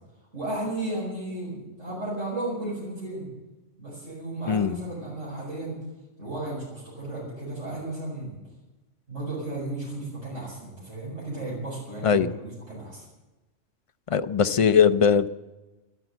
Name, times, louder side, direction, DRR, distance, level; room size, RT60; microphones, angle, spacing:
voice 1, 0.3-3.3 3.8-5.8 6.2-8.4 9.1-13.0, right 2 dB, 80° right, -7 dB, 5.7 m, -34 dB
voice 2, 4.5-4.8 12.0-12.3 14.1-15.3, left 7 dB, 45° left, 11 dB, 0.4 m, -20 dB
13.5 x 12.5 x 7.9 m, 1.1 s
omnidirectional pair, 1.3 m